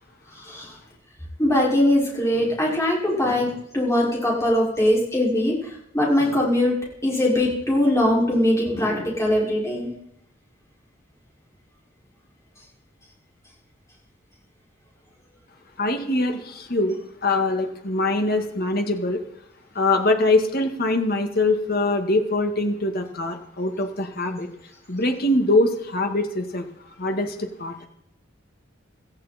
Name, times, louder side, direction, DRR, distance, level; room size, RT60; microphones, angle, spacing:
voice 1, 0.4-0.7 1.4-5.5 5.9-6.7 7.0-9.9, left 1 dB, 15° left, -4 dB, 5.9 m, -21 dB
voice 2, 15.8-19.2 19.7-24.5 24.9-26.6 27.0-27.8, left 2 dB, 50° left, 4 dB, 2.1 m, -23 dB
16.5 x 15.0 x 4.4 m, 0.74 s
head